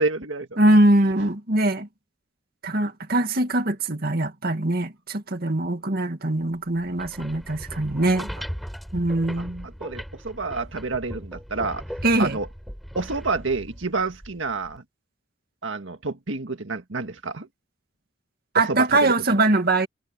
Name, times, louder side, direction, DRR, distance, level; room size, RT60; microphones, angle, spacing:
voice 1, 0.0-0.5 9.4-9.5 9.8-11.8 12.2-12.5 12.9-14.8 15.6-17.5 18.5-19.1, right 3 dB, 80° right, 1.8 m, -28 dB
voice 2, 0.6-1.9 2.6-8.3 8.9-9.7 12.0-12.4 18.5-19.9, right 2 dB, 50° right, 2.2 m, -22 dB
sound 1, 6.8-14.8, equal, ahead, 4.9 m, -38 dB
head